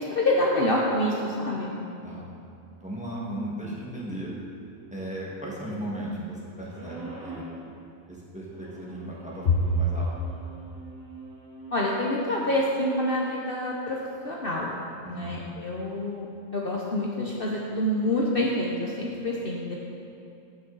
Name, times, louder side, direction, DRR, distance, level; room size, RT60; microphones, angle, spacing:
voice 1, 0.0-1.7 9.4-9.6 11.7-14.0 14.2-14.7 15.1-16.3 16.5-19.7, left 1 dB, 45° left, -3 dB, 1.0 m, -26 dB
voice 2, 2.8-4.3 4.9-7.4 8.1-10.1 15.0-15.5, right 1 dB, 5° right, -5 dB, 1.6 m, -36 dB
sound 1, 6.7-7.6 8.5-12.2, right 2 dB, 60° right, 2.2 m, -44 dB
15.0 x 6.5 x 4.0 m, 2.6 s
omnidirectional pair, 1.4 m